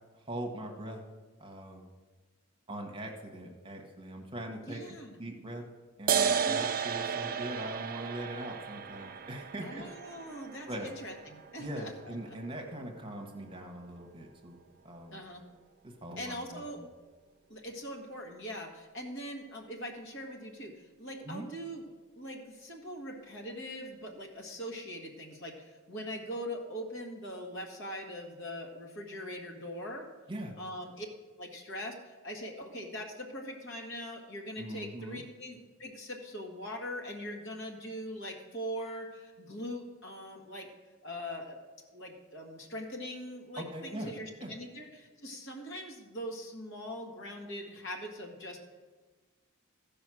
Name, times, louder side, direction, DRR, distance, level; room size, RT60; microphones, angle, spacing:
voice 1, 0.1-1.0 1.4-1.8 2.7-5.6 6.0-9.8 10.7-10.9 11.6-14.6 14.8-15.2 15.8-16.9 21.2-21.5 30.3-30.5 34.6-35.2 43.6-44.1 44.4-44.5, right 1 dB, 25° right, 2 dB, 1.2 m, -41 dB
voice 2, 4.6-5.2 6.2-6.6 9.6-12.4 15.1-15.4 16.2-16.8 17.5-21.8 22.1-30.1 30.6-31.1 31.4-40.7 41.0-41.6 41.9-48.6, equal, 55° left, 2 dB, 1.7 m, -42 dB
sound 1, 6.1-13.1, right 7 dB, 40° right, 0.4 m, -34 dB
15.0 x 5.2 x 6.2 m, 1.3 s
head